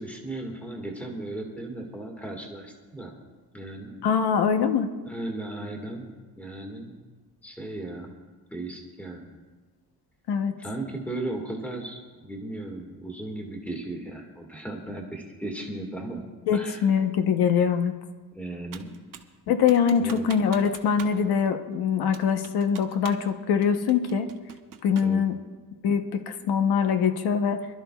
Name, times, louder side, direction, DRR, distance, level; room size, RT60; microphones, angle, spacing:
voice 1, 0.0-3.1 3.5-4.0 5.1-6.1 6.4-7.1 7.4-8.1 8.5-9.3 10.6-16.2 16.5-16.9 18.3-18.9 20.0-20.3 25.0-25.2, right 2 dB, 5° left, 1 dB, 1.6 m, -36 dB
voice 2, 4.0-4.9 10.3-10.5 16.5-17.9 19.5-24.3 24.8-25.3 25.8-27.7, left 7 dB, 80° left, 7 dB, 0.9 m, -23 dB
Computer keyboard, 18.7-19.3 19.7-21.2 21.4-21.5 22.1-23.3 23.6-25.2, right 9 dB, 55° right, 0.9 m, -44 dB
26.0 x 12.5 x 2.3 m, 1.4 s
cardioid pair, 175°, 38 cm